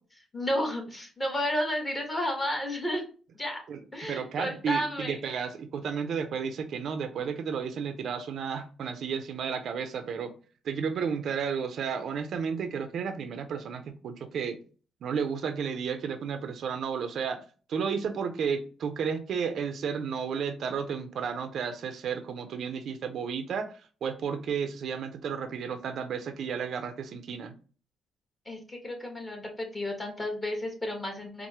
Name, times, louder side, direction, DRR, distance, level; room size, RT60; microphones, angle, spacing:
voice 1, 0.3-3.0 3.3-3.6 3.9-5.2 28.4-31.5, equal, 20° left, 2 dB, 1.3 m, -32 dB
voice 2, 3.7-10.3 10.6-14.6 15.0-17.4 17.7-27.5, right 6 dB, 65° right, 8 dB, 0.5 m, -32 dB
4.6 x 2.1 x 2.8 m, 0.38 s
cardioid pair, 90°, 0 cm